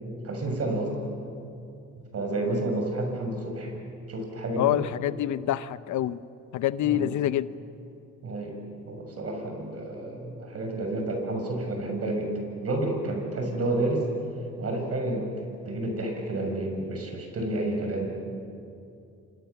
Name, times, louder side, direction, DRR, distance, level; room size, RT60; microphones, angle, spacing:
voice 1, 0.2-0.9 2.1-3.7 4.1-4.8 6.8-7.1 8.2-8.6 8.8-12.3 12.6-14.0 14.6-15.3 15.7-18.1, right 2 dB, 50° right, 3 dB, 6.9 m, -30 dB
voice 2, 4.6-6.2 6.5-7.5, left 12 dB, 70° left, 15 dB, 0.8 m, -26 dB
29.0 x 26.0 x 7.1 m, 2.6 s
cardioid pair, 90°, 30 cm